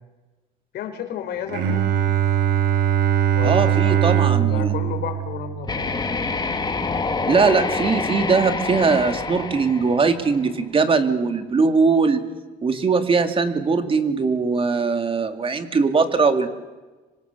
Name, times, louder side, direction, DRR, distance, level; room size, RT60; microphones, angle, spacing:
voice 1, 0.7-1.8 3.3-4.0 4.3-6.0, left 8 dB, 75° left, 7 dB, 4.5 m, -32 dB
Bowed string instrument, 1.5-7.2, right 10 dB, 85° right, 3.7 m, -22 dB
voice 2, 3.4-4.7 7.3-12.2 12.6-16.5, right 4 dB, 30° right, 8 dB, 2.5 m, -20 dB
sound 1, 5.6-10.6, left 4 dB, 25° left, 2.4 m, -27 dB
27.0 x 24.5 x 7.0 m, 1.2 s
cardioid pair, 110°, 17 cm